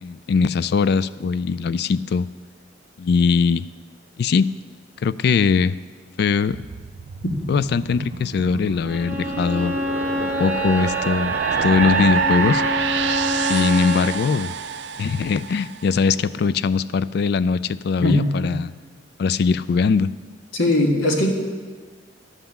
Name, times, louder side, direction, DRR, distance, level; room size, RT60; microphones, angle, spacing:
voice 1, 0.0-2.3 3.0-3.7 4.2-4.5 5.0-5.8 6.2-6.6 7.5-9.8 10.2-12.6 13.5-14.5 15.0-18.7 19.2-20.1, left 5 dB, 55° left, 17 dB, 0.3 m, -21 dB
sound 1, 6.5-15.9, right 5 dB, 65° right, 0.4 m, -27 dB
Bowed string instrument, 8.9-14.2, equal, 10° right, 0.8 m, -27 dB
voice 2, 18.0-18.5 20.5-21.3, left 1 dB, 85° left, 1 dB, 1.7 m, -19 dB
11.5 x 5.7 x 7.1 m, 1.5 s
head